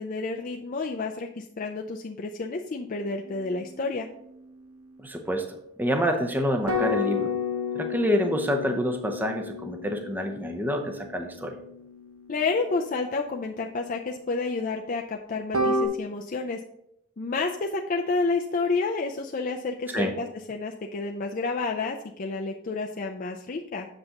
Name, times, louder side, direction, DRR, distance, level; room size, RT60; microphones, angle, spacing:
voice 1, 0.0-4.1 12.3-16.6 17.2-23.9, left 3 dB, 40° left, 2 dB, 0.4 m, -30 dB
sound 1, 3.3-5.1 6.7-13.8 15.5-15.9, left 3 dB, 80° right, 1.1 m, -32 dB
voice 2, 5.0-7.3 7.7-11.6 19.9-20.1, equal, 10° right, 4 dB, 0.6 m, -27 dB
7.8 x 6.6 x 2.9 m, 0.78 s
head